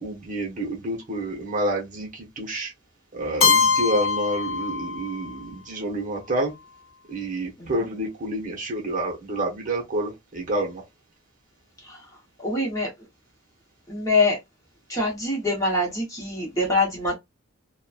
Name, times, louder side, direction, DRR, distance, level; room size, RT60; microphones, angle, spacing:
voice 1, 0.0-2.7 3.1-6.5 7.1-10.8, right 1 dB, 35° right, 0.8 m, -28 dB
Keyboard (musical), 3.4-5.3, left 5 dB, 70° left, 0.6 m, -22 dB
voice 2, 12.4-12.9 13.9-14.4 14.9-17.2, left 2 dB, 15° left, 0.9 m, -24 dB
2.8 x 2.2 x 2.4 m
head